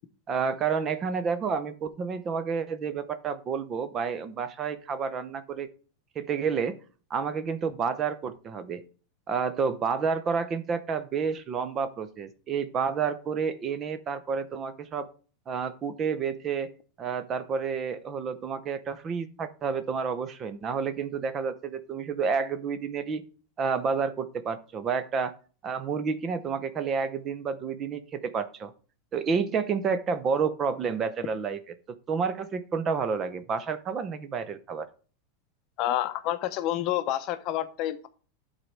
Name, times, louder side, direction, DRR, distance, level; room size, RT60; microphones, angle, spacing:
voice 1, 0.3-5.7 6.2-6.8 7.1-8.8 9.3-15.1 15.5-16.7 17.0-23.2 23.6-25.3 25.6-28.7 29.1-31.6 31.9-34.9, right 5 dB, 25° right, 12 dB, 0.6 m, -30 dB
voice 2, 35.8-38.1, left 13 dB, 40° left, 11 dB, 0.7 m, -28 dB
11.5 x 4.1 x 4.6 m, 0.39 s
supercardioid pair, 155°, 0 cm